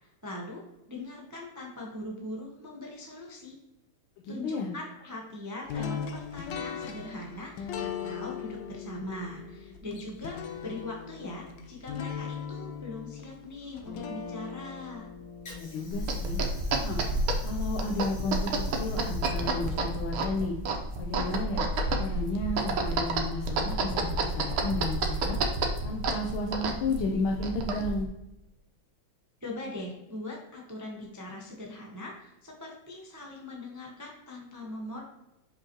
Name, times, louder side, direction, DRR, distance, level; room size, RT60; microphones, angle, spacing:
voice 1, 0.0-3.6 4.3-15.1 29.4-35.1, left 1 dB, 20° right, -1 dB, 0.5 m, -41 dB
voice 2, 4.2-4.7 15.5-16.4 16.8-17.0 17.4-20.6 21.0-21.6 22.0-25.4 25.8-28.1, left 2 dB, 90° left, 1 dB, 1.6 m, -33 dB
sound 1, 5.7-16.7, left 7 dB, 70° left, 1.3 m, -39 dB
Water / Sink (filling or washing), 14.9-21.0, equal, 45° left, 2.4 m, -50 dB
sound 2, 15.9-28.1, right 2 dB, 80° right, 1.7 m, -30 dB
6.1 x 5.3 x 3.0 m, 0.95 s
omnidirectional pair, 2.3 m